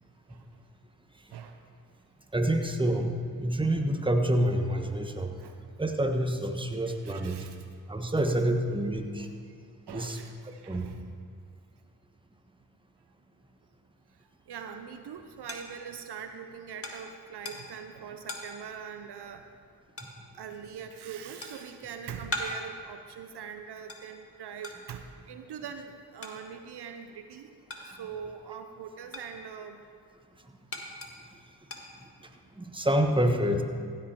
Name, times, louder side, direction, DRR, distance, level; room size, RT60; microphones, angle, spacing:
voice 1, 0.3-0.6 1.3-1.6 5.4-5.6 6.8-7.7 9.2-9.3 9.9-11.0 14.5-19.4 20.3-27.5 27.8-29.8, right 7 dB, 70° right, 7 dB, 0.7 m, -42 dB
voice 2, 2.3-3.1 3.4-5.3 5.8-7.4 7.9-9.3 9.9-10.2 10.7-10.9 32.6-33.6, right 1 dB, 10° right, 4 dB, 1.4 m, -27 dB
sound 1, 14.5-28.3 28.6-32.5, left 1 dB, 35° left, 1.6 m, -43 dB
15.5 x 8.0 x 4.5 m, 2.1 s
supercardioid pair, 40°, 41 cm